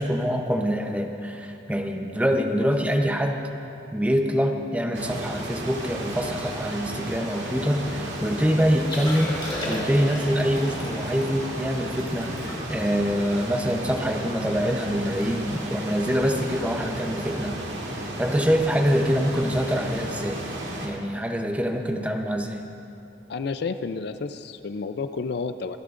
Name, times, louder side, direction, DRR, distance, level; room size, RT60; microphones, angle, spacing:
voice 1, 0.0-3.5 3.9-17.7 18.2-20.4 20.8-22.7, equal, 10° right, 3 dB, 0.7 m, -25 dB
sound 1, 4.9-20.9, right 1 dB, 85° right, 1.9 m, -34 dB
Liquid, 8.8-14.2 14.6-14.7 15.0-15.3 15.5-15.8 16.4-16.6 18.1-18.2, left 1 dB, 30° left, 2.8 m, -36 dB
voice 2, 23.3-25.8, left 4 dB, 60° left, 10 dB, 0.4 m, -30 dB
25.5 x 11.5 x 2.5 m, 2.9 s
head